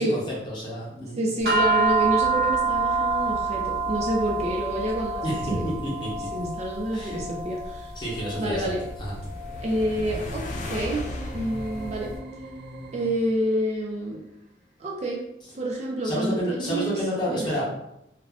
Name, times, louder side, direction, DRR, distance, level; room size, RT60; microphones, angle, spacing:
voice 1, 0.0-1.2 5.2-6.3 6.9-7.2 8.0-8.7 9.0-9.2 16.0-17.7, equal, 25° left, -6 dB, 0.8 m, -29 dB
voice 2, 1.2-5.7 6.3-7.9 8.4-8.8 9.6-11.0 11.3-12.1 12.9-14.2 14.8-15.2 15.5-17.0 17.3-17.6, right 1 dB, 35° right, -2 dB, 0.4 m, -28 dB
sound 1, 1.5-11.9, right 3 dB, 55° right, 0.9 m, -28 dB
sound 2, 7.7-13.0, left 1 dB, 45° left, 0.3 m, -38 dB
sound 3, 10.9-13.5, right 1 dB, 80° right, 1.0 m, -41 dB
2.4 x 2.1 x 3.4 m, 0.83 s
head